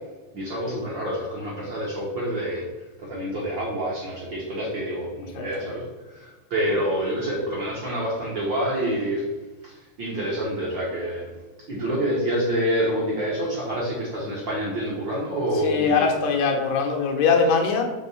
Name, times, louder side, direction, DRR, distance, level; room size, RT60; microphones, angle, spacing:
voice 1, 0.3-2.7 3.0-9.2 9.6-11.3 11.7-16.1, equal, 55° right, -4 dB, 1.4 m, -27 dB
voice 2, 5.4-5.7 6.7-6.8 15.6-17.8, left 5 dB, 70° left, 2 dB, 1.9 m, -22 dB
5.4 x 3.5 x 5.5 m, 1.2 s
omnidirectional pair, 3.6 m